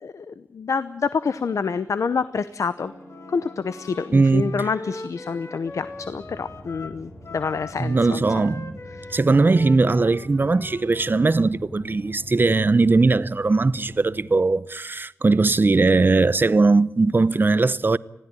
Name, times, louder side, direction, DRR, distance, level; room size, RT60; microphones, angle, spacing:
voice 1, 0.0-2.9 3.3-8.2 9.0-9.1, left 5 dB, 90° left, 0.7 m, -27 dB
sound 1, 2.8-14.2, left 1 dB, 55° left, 7.9 m, -44 dB
Wind instrument woodwind instrument, 3.1-11.5, left 3 dB, 75° left, 2.2 m, -41 dB
voice 2, 4.1-4.6 7.8-8.8 9.1-18.0, right 3 dB, 40° right, 0.7 m, -19 dB
20.5 x 16.0 x 10.0 m
wide cardioid pair, 85°, 5 cm